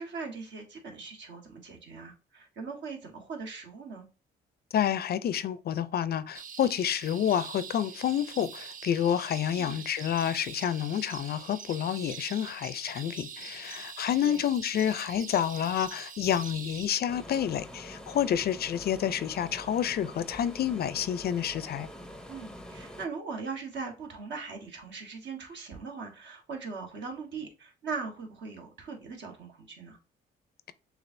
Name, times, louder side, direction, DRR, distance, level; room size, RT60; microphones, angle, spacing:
voice 1, 0.0-4.1 9.6-9.8 14.2-14.4 22.3-30.0, right 4 dB, 65° right, 1.4 m, -40 dB
voice 2, 4.7-21.9, left 9 dB, 55° left, 0.4 m, -29 dB
sound 1, 6.3-16.9, right 7 dB, 45° right, 0.5 m, -44 dB
sound 2, 17.1-23.1, equal, 5° left, 0.6 m, -45 dB
6.6 x 2.4 x 2.6 m
cardioid pair, 90°, 20 cm